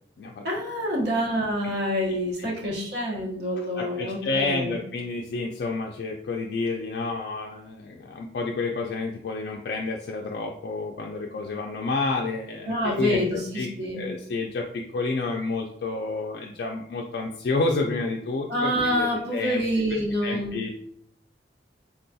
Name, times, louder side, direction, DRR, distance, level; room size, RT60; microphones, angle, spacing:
voice 1, 0.4-4.8 12.7-14.0 18.5-20.5, equal, 65° right, -2 dB, 0.9 m, -27 dB
voice 2, 3.6-19.6 19.9-20.7, left 3 dB, 60° left, 1 dB, 0.3 m, -30 dB
3.6 x 2.3 x 2.6 m, 0.67 s
head